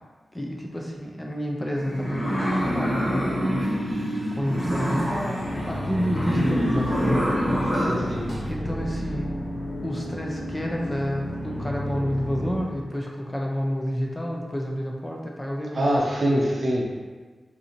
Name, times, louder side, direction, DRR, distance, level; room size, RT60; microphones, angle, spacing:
voice 1, 0.3-3.6 4.3-7.9 8.5-9.4 9.8-15.9, equal, 10° left, -1 dB, 0.4 m, -30 dB
sound 1, 1.7-8.5, equal, 50° left, 1.3 m, -26 dB
sound 2, 5.4-12.6, equal, 85° left, 0.6 m, -32 dB
voice 2, 7.7-8.3 15.7-16.8, equal, 45° right, -2 dB, 0.6 m, -24 dB
3.7 x 2.6 x 2.8 m, 1.4 s
wide cardioid pair, 100°, 0 cm